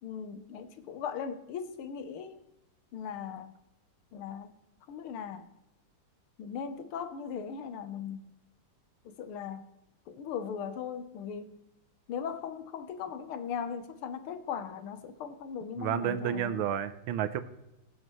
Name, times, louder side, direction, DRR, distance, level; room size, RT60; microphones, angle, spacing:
voice 1, 0.0-2.4 2.9-3.5 4.1-4.5 4.9-5.5 6.4-8.3 9.1-9.7 10.1-11.6 12.1-16.7, left 7 dB, 85° left, 10 dB, 1.8 m, -38 dB
voice 2, 15.8-17.4, right 9 dB, 80° right, 12 dB, 1.5 m, -31 dB
20.0 x 7.8 x 3.1 m, 0.92 s
omnidirectional pair, 2.3 m